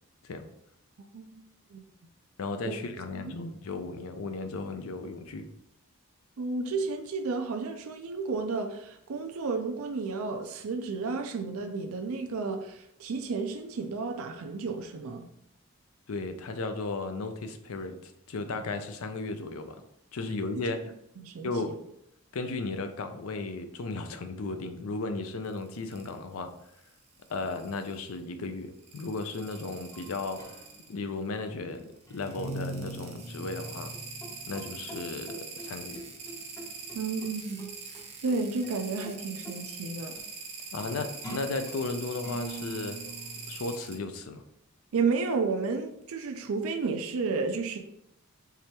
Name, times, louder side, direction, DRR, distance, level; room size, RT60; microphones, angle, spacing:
voice 1, 2.4-5.5 16.1-19.8 20.1-20.8 21.4-21.7 22.3-26.5 27.3-30.4 30.9-34.0 34.5-36.0 40.7-43.0 43.5-44.4, left 3 dB, 75° left, 7 dB, 0.5 m, -35 dB
voice 2, 6.4-15.3 21.2-21.8 36.9-40.2 44.9-47.8, right 4 dB, 75° right, 5 dB, 0.4 m, -32 dB
sound 1, 25.4-26.1 26.8-28.1 28.8-30.9 32.0-43.9, right 5 dB, 30° right, 0.6 m, -43 dB
sound 2, 29.4-29.7 29.9-31.4 32.1-37.3 37.6-38.7 39.0-39.2 39.4-39.6 40.1-40.2 40.8-41.9 42.2-43.6, right 2 dB, 15° left, 0.6 m, -43 dB
4.7 x 3.3 x 2.9 m, 0.76 s
head